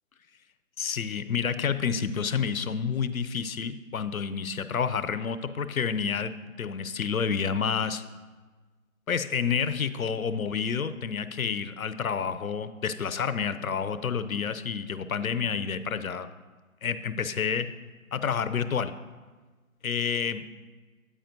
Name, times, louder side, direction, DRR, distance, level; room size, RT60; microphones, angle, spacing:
voice 1, 0.8-6.3 6.6-8.0 9.1-16.3 16.8-17.7 18.1-18.9 19.8-20.4, left 6 dB, 75° left, 12 dB, 0.6 m, -29 dB
9.0 x 8.6 x 2.7 m, 1.3 s
figure-of-eight pair, 160°, 42 cm